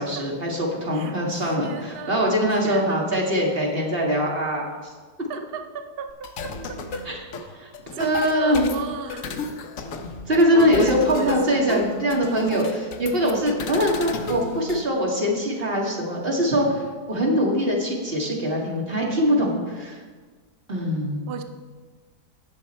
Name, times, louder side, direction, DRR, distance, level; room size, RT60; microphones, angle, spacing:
voice 1, 0.0-4.7 7.1-7.2 7.5-7.7 8.0-8.7 10.3-20.0 20.7-21.3, equal, 35° right, -2 dB, 2.1 m, -22 dB
voice 2, 0.9-2.2 2.6-3.1 5.3-7.0 8.0-9.4 10.5-11.7 21.3-21.4, right 6 dB, 75° right, 6 dB, 0.5 m, -35 dB
sound 1, 6.1-14.8, left 3 dB, 55° left, 1.1 m, -33 dB
17.0 x 6.4 x 4.4 m, 1.5 s
omnidirectional pair, 1.9 m